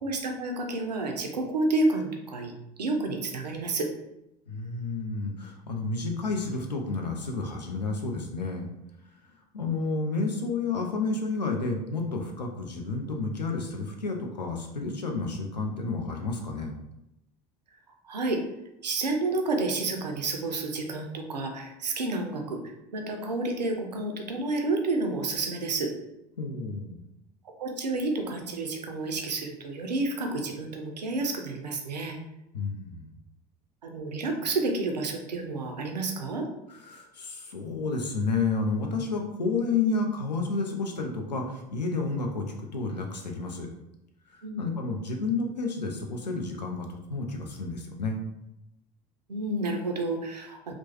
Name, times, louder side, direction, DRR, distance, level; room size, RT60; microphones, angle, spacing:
voice 1, 0.0-2.5 2.8-3.9 18.0-18.4 18.8-22.6 22.9-25.9 27.4-32.2 33.8-36.5 44.4-44.6 49.3-50.7, right 2 dB, 80° right, 3 dB, 0.5 m, -30 dB
voice 2, 4.5-8.7 9.5-16.7 26.4-27.0 32.5-33.1 36.7-43.7 44.3-48.2, left 3 dB, 80° left, 2 dB, 0.5 m, -31 dB
2.9 x 2.0 x 2.8 m, 0.88 s
figure-of-eight pair, 70°, 21 cm